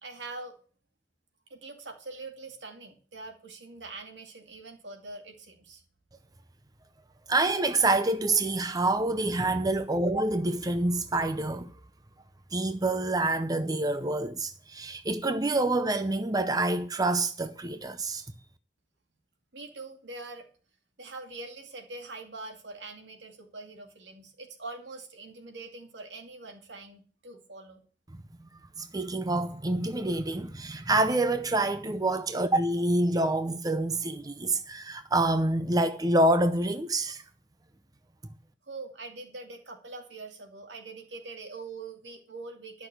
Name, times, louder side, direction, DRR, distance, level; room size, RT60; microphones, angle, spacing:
voice 1, 0.0-0.5 1.5-5.8 19.5-20.5 21.0-27.8 38.7-42.9, right 3 dB, 80° right, 2.4 m, -43 dB
voice 2, 7.3-11.7 12.5-18.2 28.8-37.2, right 2 dB, 20° right, 0.6 m, -27 dB
11.5 x 6.1 x 7.8 m
head